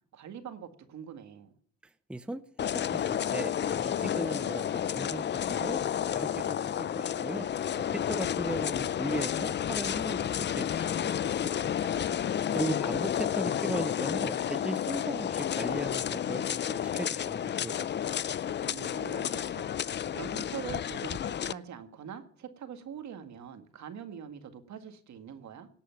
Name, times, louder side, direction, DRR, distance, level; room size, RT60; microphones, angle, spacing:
voice 1, 0.1-1.5 11.4-12.8 18.7-19.8 20.1-25.7, right 8 dB, 65° right, 8 dB, 1.9 m, -44 dB
voice 2, 1.8-7.5 7.8-11.7 12.5-18.3, right 1 dB, 5° right, 11 dB, 0.7 m, -38 dB
sound 1, 2.6-21.5, left 9 dB, 40° left, 0.4 m, -31 dB
18.0 x 8.3 x 5.9 m, 0.63 s
cardioid pair, 90°, 30 cm